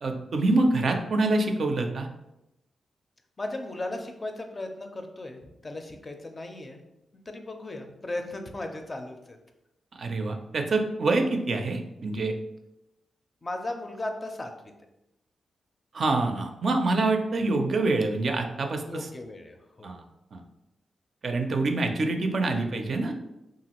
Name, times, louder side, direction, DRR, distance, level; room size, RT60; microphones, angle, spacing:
voice 1, 0.0-2.1 10.0-12.3 15.9-19.1 19.8-20.0 20.3-20.4 21.2-23.1, right 2 dB, 65° right, 4 dB, 0.4 m, -26 dB
voice 2, 3.4-6.8 7.3-9.4 13.4-14.5 18.8-19.9, left 2 dB, 35° left, 4 dB, 0.4 m, -36 dB
2.9 x 2.4 x 2.9 m, 0.90 s
cardioid pair, 55°, 0 cm